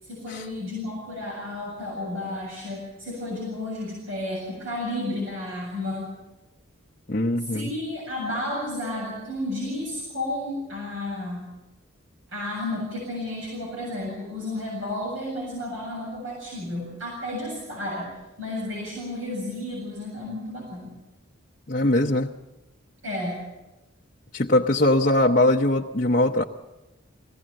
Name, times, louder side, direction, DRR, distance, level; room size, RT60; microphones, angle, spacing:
voice 1, 0.0-6.1 7.4-11.4 12.3-20.9 23.0-23.4, left 1 dB, 75° right, -3 dB, 7.9 m, -32 dB
voice 2, 7.1-7.7 21.7-22.3 24.3-26.4, left 1 dB, 40° left, -1 dB, 0.8 m, -21 dB
22.5 x 17.0 x 7.6 m, 1.0 s
head